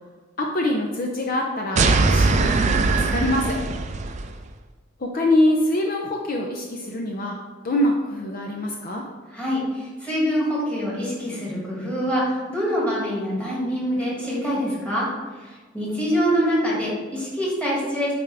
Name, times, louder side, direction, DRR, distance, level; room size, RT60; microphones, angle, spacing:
voice 1, 0.4-3.6 5.0-7.4 7.6-9.1, left 1 dB, 50° left, 1 dB, 0.5 m, -24 dB
sound 1, 1.8-4.3, right 3 dB, 40° right, 0.4 m, -20 dB
voice 2, 9.3-15.1 15.7-18.1, equal, 5° left, -6 dB, 1.8 m, -25 dB
8.5 x 3.5 x 3.3 m, 1.3 s
head